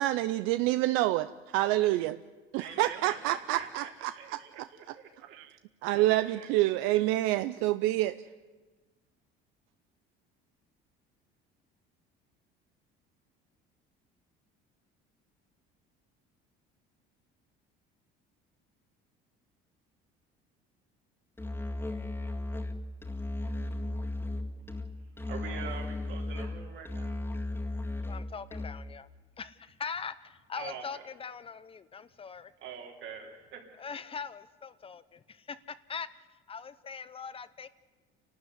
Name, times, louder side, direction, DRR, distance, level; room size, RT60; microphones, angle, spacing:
voice 1, 0.0-2.2 2.5-4.9 5.3-5.5 5.8-8.2, right 16 dB, 85° right, 13 dB, 0.6 m, -28 dB
voice 2, 2.6-5.4 5.9-7.0 25.3-27.2 30.6-31.1 32.6-33.7, right 6 dB, 65° right, 1 dB, 4.1 m, -45 dB
Musical instrument, 21.4-29.0, left 2 dB, 10° left, 1.9 m, -36 dB
voice 3, 28.1-29.1 29.4-32.5 33.8-36.1 36.5-37.7, left 6 dB, 25° left, 14 dB, 0.8 m, -41 dB
29.0 x 12.5 x 9.6 m, 1.3 s
cardioid pair, 115°, 20 cm